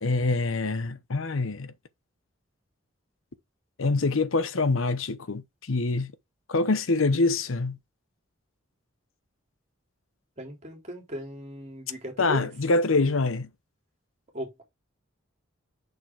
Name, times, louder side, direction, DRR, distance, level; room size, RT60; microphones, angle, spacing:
voice 1, 0.0-1.7 3.8-6.1 6.5-7.8 12.2-13.5, left 3 dB, 75° left, 0.9 m, -25 dB
voice 2, 10.4-12.5 14.3-14.6, equal, 35° right, 3.6 m, -37 dB
6.8 x 6.5 x 3.6 m
head